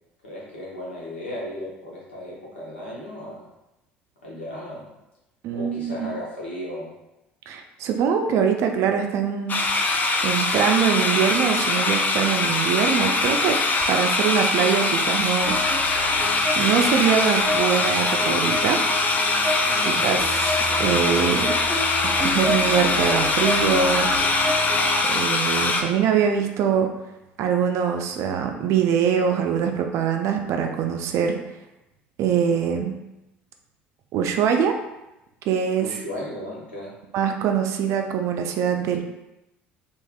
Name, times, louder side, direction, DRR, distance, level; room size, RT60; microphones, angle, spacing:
voice 1, 0.2-3.5 4.2-4.9 5.5-6.9 19.6-20.1 35.8-36.9, left 1 dB, 85° left, -6 dB, 0.9 m, -35 dB
voice 2, 5.4-6.2 7.5-9.6 10.2-13.6 13.9-15.6 16.6-18.8 19.9-21.6 22.0-24.1 25.0-26.9 27.4-31.4 32.2-33.0 34.1-34.8 35.5-35.9 37.1-39.0, right 7 dB, 50° right, 4 dB, 0.4 m, -23 dB
sound 1, 9.5-25.8, left 3 dB, 30° left, 0.4 m, -22 dB
Dramatic Uprising Pulse Ambience, 15.4-25.0, left 1 dB, 5° right, 1.2 m, -29 dB
3.3 x 2.4 x 2.3 m, 0.93 s
figure-of-eight pair, 60°, 6 cm